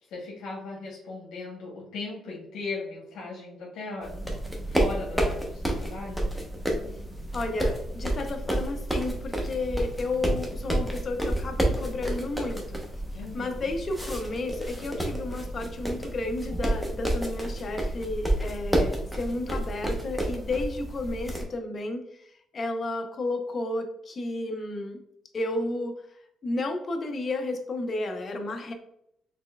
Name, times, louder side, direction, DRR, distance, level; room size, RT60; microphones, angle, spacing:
voice 1, 0.1-4.4 4.7-6.3 13.1-13.7, left 3 dB, 90° left, -4 dB, 1.0 m, -38 dB
sound 1, 4.0-21.4, right 1 dB, ahead, 0.8 m, -30 dB
voice 2, 7.3-12.8 13.3-25.0 25.3-26.0 26.4-28.7, left 2 dB, 40° left, 5 dB, 0.6 m, -32 dB
4.2 x 3.2 x 2.2 m, 0.74 s
cardioid pair, 100°, 0 cm